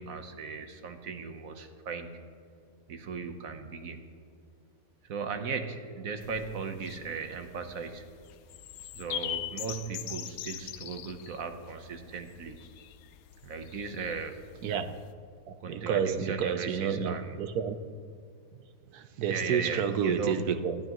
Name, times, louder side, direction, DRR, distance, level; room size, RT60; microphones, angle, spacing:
voice 1, 0.0-2.1 2.9-4.1 5.0-8.0 8.9-12.6 13.4-14.4 15.6-17.4 19.3-20.4, right 5 dB, 70° right, 7 dB, 1.4 m, -37 dB
sound 1, 6.2-15.1, left 11 dB, 75° left, 1.0 m, -42 dB
voice 2, 14.6-14.9 15.5-17.8 18.9-20.8, right 7 dB, 90° right, 10 dB, 1.3 m, -30 dB
19.5 x 14.5 x 3.0 m, 2.2 s
omnidirectional pair, 1.6 m